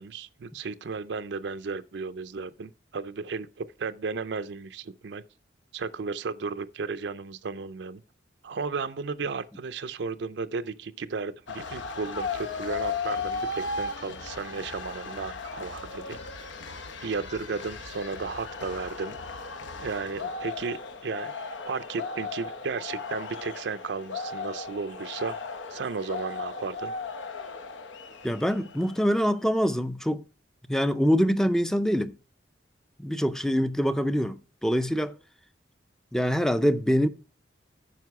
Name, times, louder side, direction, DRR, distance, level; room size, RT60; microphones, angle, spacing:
voice 1, 0.0-5.2 5.7-8.0 8.4-16.2 17.0-19.1 19.8-20.8 21.0-21.3 21.6-25.4 25.7-26.9, right 4 dB, 70° right, 0.4 m, -34 dB
sound 1, 11.5-29.2, left 4 dB, 85° left, 0.9 m, -36 dB
voice 2, 28.2-30.2 30.7-32.1 33.0-35.1 36.1-37.1, equal, 5° left, 0.4 m, -24 dB
9.3 x 5.8 x 4.7 m
head